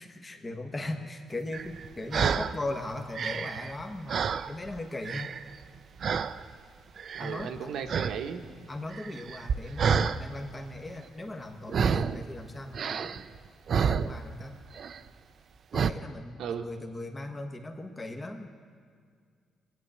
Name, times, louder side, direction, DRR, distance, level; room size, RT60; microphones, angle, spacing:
voice 1, 0.0-5.3 7.2-7.7 8.7-13.2 13.7-14.5 15.7-18.5, left 2 dB, 25° left, 4 dB, 1.2 m, -38 dB
sound 1, 1.5-2.6 3.0-4.8 5.1-5.6 6.0-6.4 7.0-7.6 7.9-8.2 8.4-10.2 11.7-12.2 12.7-14.5 14.7-15.1 15.7-15.9, right 6 dB, 55° right, 0.5 m, -29 dB
voice 2, 7.1-8.4 9.6-9.9 16.4-16.7, right 8 dB, 75° right, 6 dB, 1.0 m, -36 dB
20.0 x 8.7 x 7.9 m, 2.1 s
cardioid pair, 90°, 0 cm